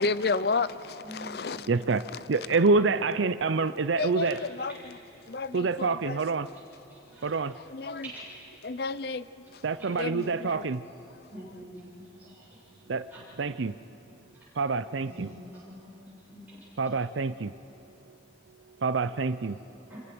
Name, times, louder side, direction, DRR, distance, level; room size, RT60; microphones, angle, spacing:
voice 1, 0.0-1.7 4.0-4.7 5.3-6.2 7.5-8.1 8.6-9.3 9.5-9.6 10.0-10.6, left 4 dB, 55° left, 0.6 m, -31 dB
voice 2, 1.0-2.1 2.4-3.0 4.2-4.3 5.2-5.7 6.9-7.3 8.0-8.3 9.7-9.9 11.3-12.8 13.1-13.2 14.3-14.5 15.0-16.6 19.9-20.0, equal, 10° right, 7.0 m, -47 dB
voice 3, 1.7-4.4 5.5-6.5 7.2-7.6 9.6-10.9 12.9-13.1 13.4-13.8 14.6-15.3 16.8-17.5 18.8-19.6, right 4 dB, 90° right, 0.6 m, -27 dB
26.0 x 23.0 x 6.2 m
head